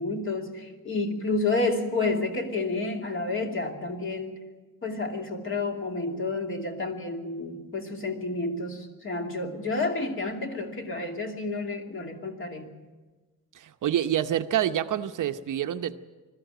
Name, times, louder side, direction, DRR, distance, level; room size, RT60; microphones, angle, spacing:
voice 1, 0.0-4.4 4.8-12.7, left 3 dB, 35° left, 2 dB, 2.7 m, -30 dB
voice 2, 13.5-16.0, right 11 dB, 60° right, 8 dB, 0.9 m, -27 dB
21.0 x 14.0 x 9.1 m, 1.3 s
cardioid pair, 145°, 36 cm